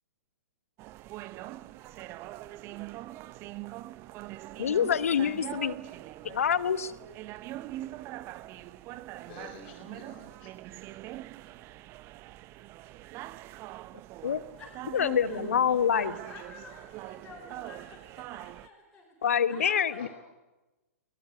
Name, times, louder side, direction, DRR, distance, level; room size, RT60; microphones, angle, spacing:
sound 1, 0.8-18.7, right 16 dB, 30° right, 0.7 m, -43 dB
voice 1, 4.6-5.7 6.2-6.9 14.2-14.4 14.9-16.1 19.2-20.1, left 8 dB, 70° left, 16 dB, 1.1 m, -26 dB
voice 2, 9.3-10.5 20.0-20.1, left 5 dB, 45° left, 0 dB, 4.6 m, -48 dB
voice 3, 14.6-15.4 15.7-20.1, left 3 dB, 5° left, -5 dB, 4.7 m, -50 dB
22.5 x 18.0 x 8.5 m, 1.1 s
hypercardioid pair, 115°, 8 cm